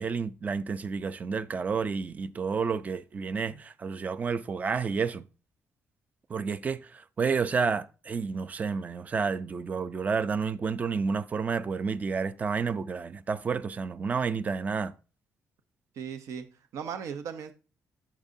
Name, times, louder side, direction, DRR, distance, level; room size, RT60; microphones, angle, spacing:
voice 1, 0.0-5.2 6.3-14.9, right 5 dB, 30° right, 0.4 m, -30 dB
voice 2, 16.0-16.4 16.7-17.5, right 7 dB, 75° right, 0.8 m, -37 dB
8.8 x 7.4 x 2.7 m
cardioid pair, 150°, 5 cm